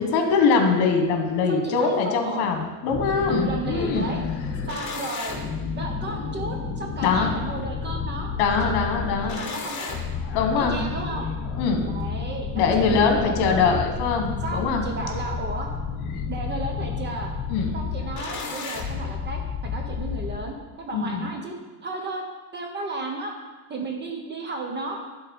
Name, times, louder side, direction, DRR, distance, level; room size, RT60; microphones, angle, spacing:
voice 1, 0.0-4.3 4.5-4.7 7.0-7.3 8.4-9.3 10.2-10.8 11.5-11.8 12.5-14.8 16.1-16.2 17.5-17.8 20.9-21.3, left 5 dB, 55° left, 4 dB, 1.6 m, -23 dB
voice 2, 1.5-2.5 3.3-4.2 4.7-5.4 5.7-8.3 8.6-8.7 9.4-10.0 10.6-11.3 11.9-13.8 14.4-15.7 16.3-17.3 17.7-21.5 21.8-22.2 22.5-23.4 23.7-25.0, right 2 dB, 20° right, 2 dB, 1.0 m, -33 dB
sound 1, 2.9-20.4, left 5 dB, 40° left, 1.5 m, -31 dB
10.5 x 4.1 x 5.5 m, 1.2 s
cardioid pair, 140°, 47 cm